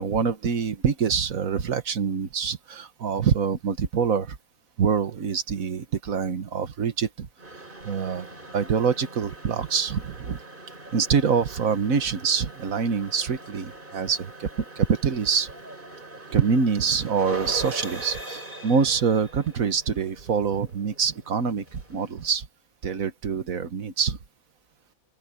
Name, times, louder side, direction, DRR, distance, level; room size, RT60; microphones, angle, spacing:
voice 1, 0.0-4.4 4.8-7.3 7.8-10.4 10.9-14.5 14.8-15.5 16.3-22.5 22.8-24.2, right 6 dB, 70° right, 1.8 m, -25 dB
sound 1, 7.4-22.3, right 2 dB, 35° right, 5.4 m, -42 dB
open air
omnidirectional pair, 1.5 m